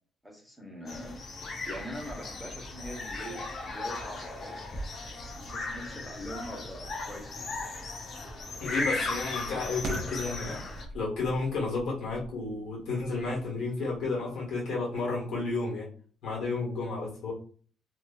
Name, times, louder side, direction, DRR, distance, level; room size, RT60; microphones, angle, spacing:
voice 1, 0.2-1.2 1.6-4.6 5.4-7.5, equal, ahead, -1 dB, 1.0 m, -42 dB
sound 1, 0.9-10.8, left 2 dB, 60° left, 0.7 m, -37 dB
sound 2, 4.1-14.7, right 1 dB, 55° right, 0.5 m, -46 dB
voice 2, 8.6-15.8 16.2-17.3, left 3 dB, 85° left, -3 dB, 1.4 m, -32 dB
2.6 x 2.5 x 2.3 m, 0.44 s
cardioid pair, 90°, 0 cm